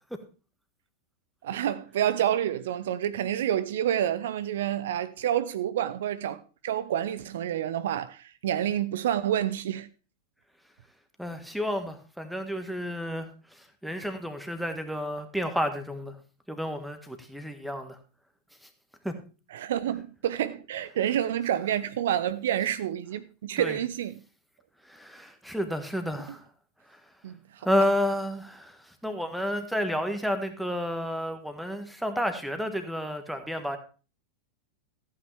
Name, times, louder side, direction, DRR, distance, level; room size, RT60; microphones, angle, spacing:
voice 1, 1.4-9.9 19.5-24.2 27.2-27.6, right 10 dB, 60° right, 0.4 m, -28 dB
voice 2, 11.2-16.2 16.5-18.0 19.0-19.1 23.6-23.8 24.8-26.5 26.9-27.0 27.6-33.8, equal, ahead, 1.5 m, -31 dB
14.0 x 8.8 x 3.4 m
figure-of-eight pair, 90°, 0 cm